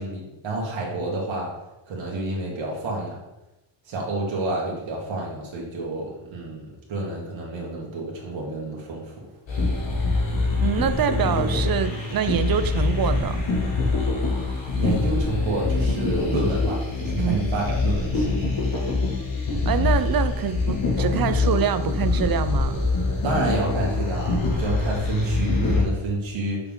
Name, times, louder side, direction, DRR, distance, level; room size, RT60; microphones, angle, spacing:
voice 1, 0.0-1.5 1.9-3.2 3.9-9.1 14.7-18.5 23.2-26.6, right 2 dB, 85° right, -3 dB, 1.9 m, -29 dB
sound 1, 9.5-25.8, left 3 dB, 80° left, 2.1 m, -24 dB
voice 2, 10.6-13.4 17.2-17.4 19.7-22.8, right 8 dB, 50° right, 11 dB, 0.6 m, -25 dB
6.8 x 5.8 x 3.8 m, 0.96 s
cardioid pair, 105°, 45 cm